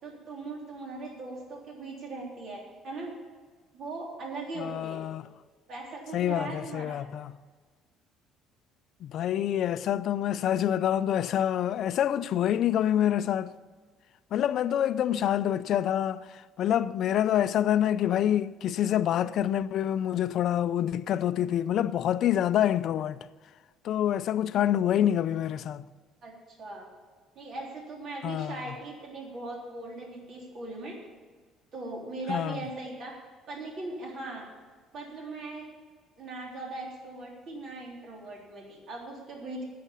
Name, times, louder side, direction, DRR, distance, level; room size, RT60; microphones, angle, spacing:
voice 1, 0.0-3.1 3.7-5.0 5.7-7.0 26.2-26.9 27.4-31.0 31.7-33.1 33.5-34.5 34.9-35.6 36.2-39.6, right 2 dB, 50° right, 3.5 m, -39 dB
voice 2, 4.6-5.3 6.1-7.4 9.0-13.5 14.3-23.3 23.8-25.9 28.2-28.6 32.3-32.6, left 10 dB, 60° left, 0.5 m, -27 dB
9.7 x 8.5 x 8.3 m
cardioid pair, 120°, 0 cm